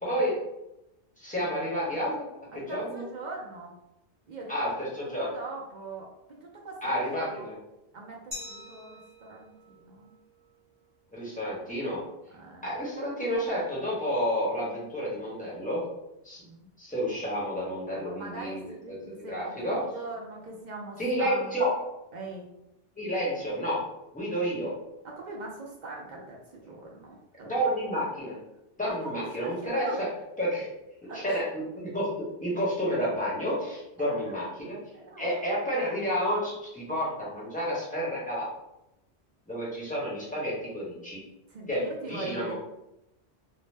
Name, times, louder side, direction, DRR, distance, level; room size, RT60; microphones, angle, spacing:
voice 1, 0.0-0.4 1.2-2.3 2.5-3.0 4.5-5.3 6.8-7.6 11.1-12.0 12.6-15.8 16.2-16.4 16.8-19.8 21.0-21.7 22.9-23.8 24.1-24.7 27.5-28.4 28.8-30.1 30.4-30.7 31.1-34.8 35.2-38.5 39.5-41.2 41.7-42.5, equal, 10° left, -7 dB, 0.9 m, -30 dB
voice 2, 2.5-3.7 4.3-7.5 7.9-10.1 12.3-12.7 16.4-16.7 17.9-21.6 22.1-22.5 25.0-27.6 28.9-30.0 31.1-31.4 34.0-34.4 34.9-35.4 41.5-42.5, right 2 dB, 55° right, -1 dB, 0.5 m, -41 dB
Glass, 8.3-11.0, left 2 dB, 25° right, 0.9 m, -46 dB
2.6 x 2.0 x 3.2 m, 0.88 s
omnidirectional pair, 1.2 m